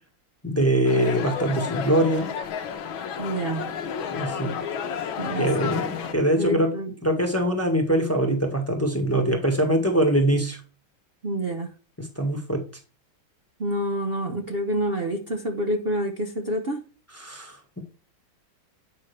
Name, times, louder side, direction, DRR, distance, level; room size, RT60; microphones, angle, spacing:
voice 1, 0.4-2.3 4.1-4.5 5.4-6.7 7.0-10.6 12.0-12.6 17.2-17.8, right 1 dB, 10° left, 1.3 m, -23 dB
sound 1, 0.8-6.1, left 7 dB, 80° left, 1.8 m, -31 dB
voice 2, 3.2-3.7 5.2-5.7 6.4-6.9 11.2-11.7 13.6-16.8, right 1 dB, 40° right, 1.0 m, -28 dB
9.7 x 5.6 x 3.3 m
omnidirectional pair, 2.2 m